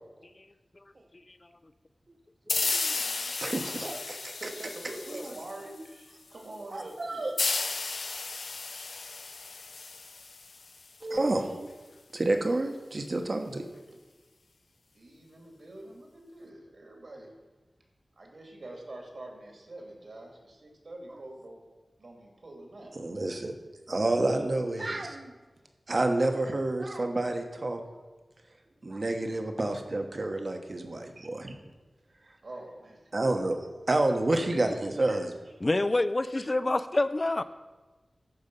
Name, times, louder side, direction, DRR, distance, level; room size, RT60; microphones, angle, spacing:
sound 1, 2.5-5.9 7.4-10.9, left 3 dB, 85° left, 0.8 m, -33 dB
voice 1, 2.5-3.0 3.4-4.3 6.7-7.3 11.0-11.7 12.1-13.6 23.0-23.5 23.9-25.3 25.9-27.8 28.8-31.6 33.1-33.6 33.9-35.3, right 2 dB, 50° right, 5 dB, 1.1 m, -29 dB
voice 2, 4.2-7.4 14.9-17.3 18.2-21.6 22.0-22.9 32.4-33.1 34.5-35.2, right 1 dB, 65° right, 1 dB, 2.5 m, -45 dB
voice 3, 35.6-37.4, left 2 dB, 35° left, 13 dB, 0.4 m, -27 dB
14.0 x 5.5 x 5.4 m, 1.2 s
wide cardioid pair, 75°, 0 cm